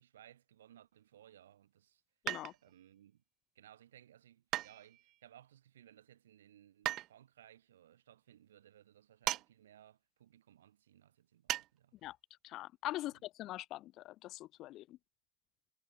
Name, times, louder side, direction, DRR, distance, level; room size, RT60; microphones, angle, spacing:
voice 1, 0.0-2.0 2.6-3.2 3.5-12.0, right 11 dB, 75° right, 5.9 m, -61 dB
sound 1, 2.3-2.8 4.5-5.2 6.9-7.1 9.3-9.5 9.8-9.9 11.5-11.7 12.0-12.1, right 15 dB, 50° right, 1.7 m, -37 dB
voice 2, 12.4-15.0, left 16 dB, 50° left, 1.9 m, -43 dB
figure-of-eight pair, 70°, 0 cm